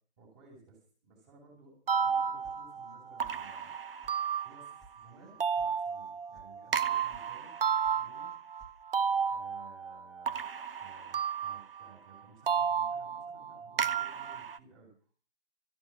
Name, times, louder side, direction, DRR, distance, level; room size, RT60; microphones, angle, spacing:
voice 1, 0.2-3.7 4.4-7.6 7.9-8.3 9.3-10.4 10.8-14.9, right 4 dB, 25° right, 0 dB, 7.6 m, -57 dB
sound 1, 1.9-5.0 5.4-11.9 12.5-14.6, right 7 dB, 60° right, 1.0 m, -32 dB
sound 2, 2.4-3.0 3.2-3.8 4.0-4.1 4.5-4.9 5.2-5.7 6.0-6.5 6.8-7.3 7.5-8.0 8.3-8.8, right 2 dB, ahead, 0.7 m, -58 dB
14.0 x 14.0 x 6.2 m, 0.41 s
figure-of-eight pair, 145°, 33 cm